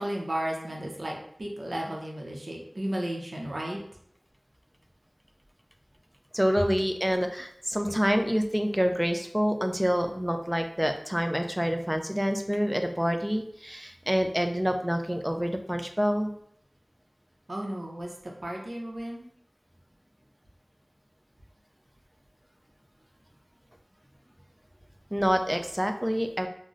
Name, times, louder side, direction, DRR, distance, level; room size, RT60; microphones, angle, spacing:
voice 1, 0.0-3.8 17.5-19.2, right 1 dB, 75° right, -1 dB, 0.6 m, -34 dB
voice 2, 6.3-16.3 25.1-26.5, equal, 10° right, 6 dB, 0.3 m, -27 dB
3.7 x 2.0 x 2.4 m, 0.67 s
wide cardioid pair, 40°, 0 cm